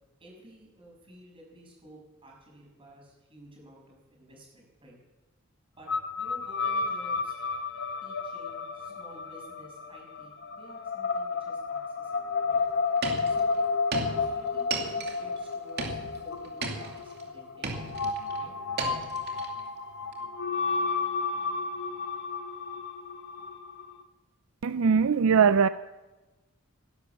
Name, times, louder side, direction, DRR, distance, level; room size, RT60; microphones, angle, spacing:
voice 1, 0.2-4.9 5.8-5.9 6.2-7.4 8.0-12.6 13.2-13.6 14.0-18.1 18.3-18.5, right 1 dB, 25° right, -1 dB, 6.7 m, -53 dB
sound 1, 5.9-24.0, left 4 dB, 55° left, 1.0 m, -32 dB
sound 2, 12.5-12.6 13.0-13.5 13.9-15.4 15.8-17.2 17.6-18.4 18.8-19.6 20.1-20.2, right 3 dB, 50° right, 2.5 m, -35 dB
voice 2, 24.6-25.7, right 6 dB, 70° right, 13 dB, 0.4 m, -21 dB
17.0 x 12.0 x 7.2 m, 1.1 s
head